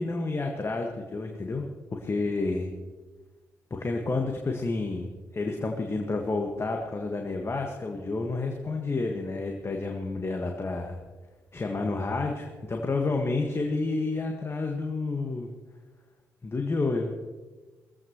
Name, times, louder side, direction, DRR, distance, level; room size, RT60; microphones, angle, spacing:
voice 1, 0.0-2.7 3.7-11.0 11.5-15.5 16.4-17.1, left 3 dB, 30° left, 2 dB, 1.7 m, -30 dB
20.5 x 15.5 x 3.1 m, 1.3 s
figure-of-eight pair, 40°, 9 cm